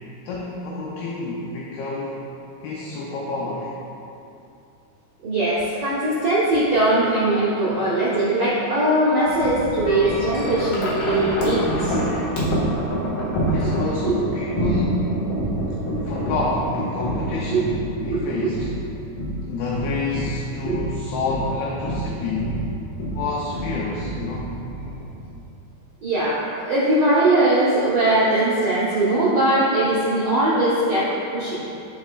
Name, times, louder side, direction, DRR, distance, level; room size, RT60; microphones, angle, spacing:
voice 1, 0.3-2.2 2.6-3.7 13.4-15.1 15.7-17.7 18.0-18.7 19.5-22.7 23.1-24.5, left 3 dB, 80° left, -4 dB, 2.3 m, -28 dB
voice 2, 5.2-11.9 14.0-14.1 17.5-17.7 18.1-18.5 20.6-20.8 26.0-31.6, right 1 dB, 75° right, -10 dB, 1.4 m, -20 dB
Wind chime, 9.3-25.4, right 1 dB, 55° left, 2.9 m, -27 dB
13.5 x 4.9 x 2.4 m, 2.7 s
omnidirectional pair, 5.0 m